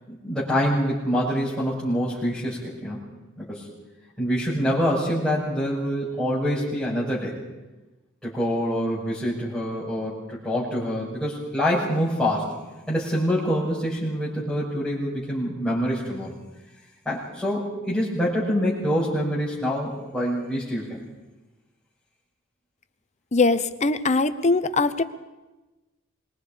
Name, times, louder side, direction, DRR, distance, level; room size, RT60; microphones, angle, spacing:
voice 1, 0.1-3.1 3.4-3.7 4.2-7.4 8.2-12.5 12.9-16.3 17.0-21.0, equal, ahead, -11 dB, 6.2 m, -26 dB
voice 2, 23.3-25.0, left 3 dB, 35° left, 11 dB, 1.0 m, -21 dB
26.0 x 22.5 x 5.2 m, 1.1 s
head